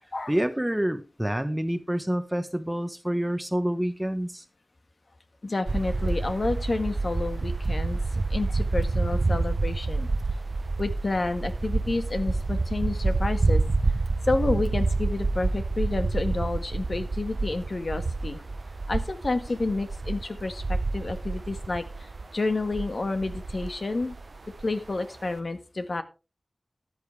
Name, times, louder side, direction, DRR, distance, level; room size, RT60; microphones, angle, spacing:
voice 1, 0.3-4.4, right 1 dB, 10° right, 10 dB, 1.1 m, -27 dB
voice 2, 5.4-10.1 10.8-13.6 14.3-18.4 18.9-24.2 24.6-26.0, left 2 dB, 60° left, 8 dB, 1.6 m, -30 dB
sound 1, 5.7-24.9, right 3 dB, 65° right, 0.7 m, -28 dB
13.5 x 9.4 x 3.3 m, 0.31 s
wide cardioid pair, 60°, 0 cm